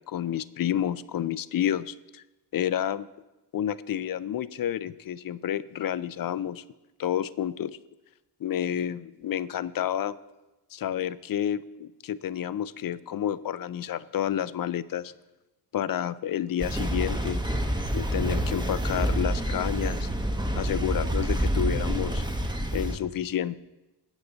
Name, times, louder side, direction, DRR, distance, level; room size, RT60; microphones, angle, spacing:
voice 1, 0.1-2.2 2.5-3.1 3.5-6.6 7.0-7.8 8.4-10.2 10.7-15.1 15.7-17.4 17.9-20.1 20.6-22.2 22.7-23.6, left 10 dB, 60° left, 17 dB, 0.5 m, -30 dB
sound 1, 16.6-23.0, right 1 dB, 10° right, 0.9 m, -28 dB
16.0 x 8.3 x 4.0 m, 1.1 s
wide cardioid pair, 95°, 41 cm